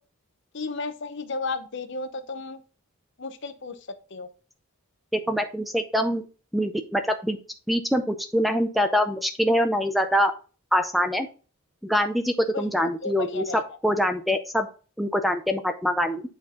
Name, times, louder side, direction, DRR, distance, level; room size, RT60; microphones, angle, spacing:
voice 1, 0.5-2.6 3.2-3.7 4.1-4.3 12.5-12.7 13.0-13.6, left 3 dB, 55° left, 10 dB, 0.7 m, -33 dB
voice 2, 5.1-6.2 6.5-7.4 7.7-10.3 10.7-11.3 11.8-14.7 15.0-16.2, equal, ahead, 7 dB, 0.4 m, -24 dB
8.6 x 4.3 x 3.7 m, 0.36 s
head